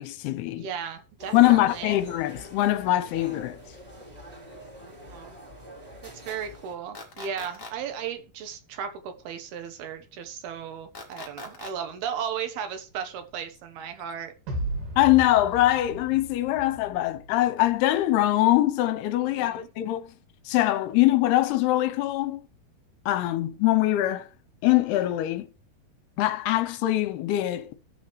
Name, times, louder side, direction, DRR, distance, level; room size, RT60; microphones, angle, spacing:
voice 1, 0.0-0.7 1.3-3.6 15.0-20.1 20.5-22.4 23.1-24.3 24.6-25.5 26.2-27.7, left 15 dB, 80° left, 2.6 m, -23 dB
voice 2, 0.6-2.0 4.8-5.4 6.0-14.3 19.2-19.7, right 8 dB, 75° right, 2.9 m, -36 dB
sound 1, 1.2-6.7, equal, 20° right, 1.8 m, -45 dB
sound 2, 6.9-7.7 10.9-11.7, left 3 dB, 50° left, 0.9 m, -40 dB
sound 3, 14.5-17.8, right 1 dB, 55° right, 3.3 m, -36 dB
15.0 x 6.3 x 3.1 m
omnidirectional pair, 4.8 m